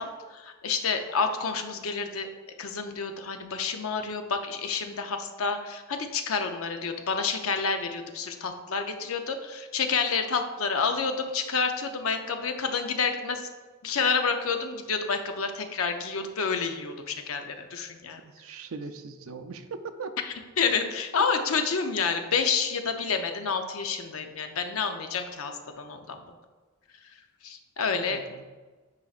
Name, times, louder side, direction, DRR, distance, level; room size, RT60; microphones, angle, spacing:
voice 1, 0.0-2.3 2.6-13.5 13.8-18.2 20.6-26.2 27.4-28.2, left 5 dB, 80° left, 6 dB, 0.6 m, -29 dB
voice 2, 18.2-20.1 27.9-28.5, right 4 dB, 75° right, 9 dB, 0.5 m, -40 dB
9.6 x 4.1 x 2.4 m, 1.3 s
head